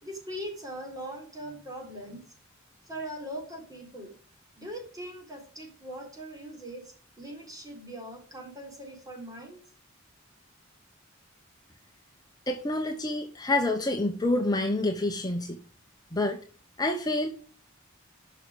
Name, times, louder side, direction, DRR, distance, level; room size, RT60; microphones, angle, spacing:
voice 1, 0.0-2.2 2.9-4.1 4.6-9.6, right 1 dB, 20° right, 2 dB, 3.8 m, -41 dB
voice 2, 12.5-15.6 16.1-16.4 16.8-17.3, left 2 dB, 20° left, 4 dB, 1.0 m, -27 dB
11.0 x 6.2 x 5.1 m, 0.43 s
head